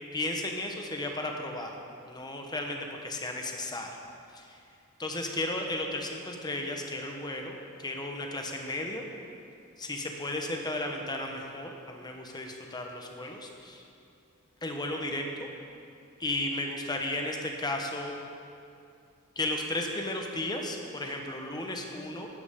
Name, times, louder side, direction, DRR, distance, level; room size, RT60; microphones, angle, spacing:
voice 1, 0.1-1.7 2.1-3.9 4.3-4.6 5.0-9.0 9.8-13.8 14.6-15.5 16.2-18.2 19.4-22.3, left 1 dB, 20° left, 2 dB, 1.1 m, -34 dB
13.0 x 11.0 x 3.7 m, 2.5 s
head